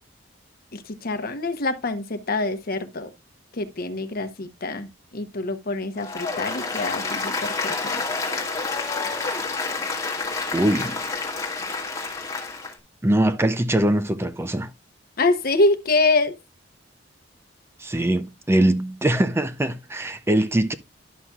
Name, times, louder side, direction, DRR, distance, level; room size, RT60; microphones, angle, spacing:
voice 1, 0.7-3.1 3.5-8.0 15.2-16.3, left 2 dB, 50° left, 0.9 m, -25 dB
Applause, 6.0-12.7, left 3 dB, 15° left, 1.7 m, -29 dB
voice 2, 10.5-11.0 13.0-14.7 17.8-20.7, right 1 dB, 15° right, 0.5 m, -22 dB
11.0 x 5.8 x 2.3 m
head